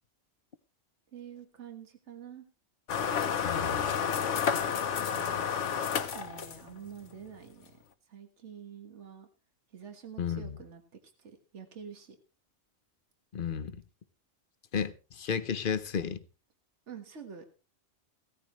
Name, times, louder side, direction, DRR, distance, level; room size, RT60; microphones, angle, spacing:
voice 1, 1.1-2.4 5.1-7.7 8.1-9.3 9.7-10.8 11.2-12.2 16.9-17.4, right 7 dB, 75° right, 1.8 m, -47 dB
sound 1, 2.9-6.9, left 7 dB, 85° left, 1.2 m, -30 dB
voice 2, 3.4-4.0 10.2-10.6 13.3-13.8 14.7-16.2, left 7 dB, 50° left, 0.9 m, -33 dB
16.5 x 14.0 x 3.1 m
omnidirectional pair, 1.2 m